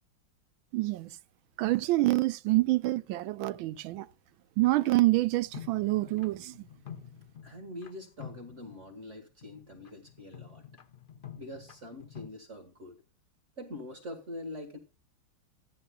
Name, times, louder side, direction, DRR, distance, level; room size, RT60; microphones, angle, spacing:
voice 1, 0.7-1.2 1.6-4.1 4.6-6.6, right 18 dB, 80° right, 1.4 m, -27 dB
sound 1, 5.5-7.9 8.2-9.1 9.4-12.3, left 8 dB, 90° left, 0.4 m, -48 dB
voice 2, 7.4-10.8 11.4-13.0 13.6-14.8, left 1 dB, 40° right, 1.6 m, -44 dB
15.0 x 10.0 x 2.2 m
omnidirectional pair, 2.2 m